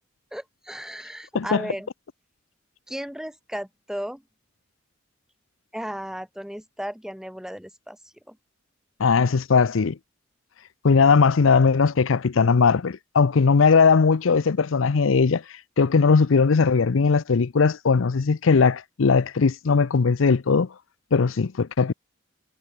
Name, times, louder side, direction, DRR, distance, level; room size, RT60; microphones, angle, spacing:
voice 1, 0.3-1.9 2.9-4.2 5.7-8.4, equal, 5° right, 2.2 m, -35 dB
voice 2, 9.0-9.9 10.8-15.4 15.8-20.7 21.1-21.9, left 5 dB, 85° left, 0.6 m, -19 dB
head